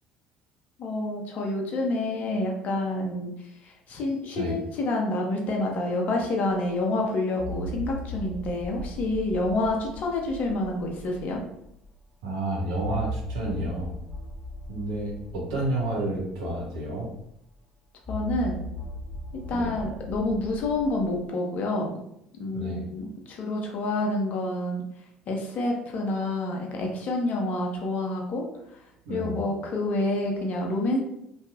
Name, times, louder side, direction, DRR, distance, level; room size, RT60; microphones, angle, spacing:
voice 1, 0.8-3.3 3.9-11.4 18.1-18.7 19.5-22.0 22.4-24.8 25.3-28.4 29.1-31.0, left 2 dB, 50° left, 1 dB, 0.7 m, -28 dB
sound 1, 6.5-6.6 7.4-11.9 12.7-17.4 18.0-21.1, equal, ahead, 1.1 m, -38 dB
voice 2, 12.2-13.9 14.7-17.1 19.5-19.8 22.5-22.9 29.0-29.4, right 1 dB, 75° right, -3 dB, 0.8 m, -30 dB
2.7 x 2.3 x 2.4 m, 0.80 s
hypercardioid pair, 60°, 3 cm